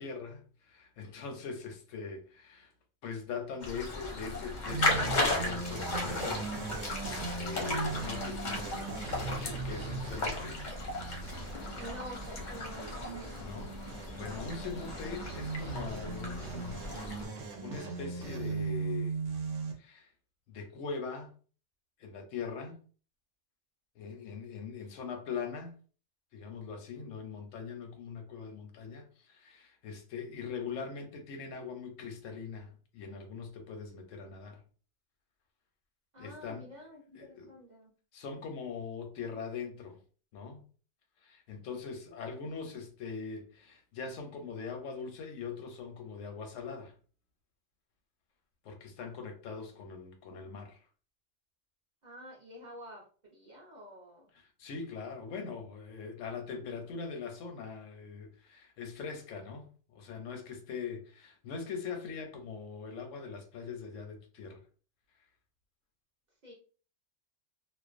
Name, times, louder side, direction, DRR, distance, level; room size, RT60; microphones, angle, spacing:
voice 1, 0.0-2.7 3.0-6.5 7.3-10.6 13.4-17.2 17.6-19.2 19.8-20.1 20.5-21.3 22.0-22.7 24.0-25.7 26.3-34.6 36.2-36.7 37.1-37.5 38.1-40.0 40.3-40.6 41.2-46.9 48.6-50.8 54.6-64.6, left 5 dB, 85° left, 1.0 m, -42 dB
sound 1, 3.6-17.3, left 2 dB, 50° left, 0.6 m, -36 dB
sound 2, 4.7-19.7, right 4 dB, 80° right, 0.9 m, -39 dB
voice 2, 11.8-13.4 36.1-37.9 52.0-54.3 56.6-56.7 66.4-66.5, equal, 45° right, 0.6 m, -48 dB
2.5 x 2.1 x 2.4 m
omnidirectional pair, 1.3 m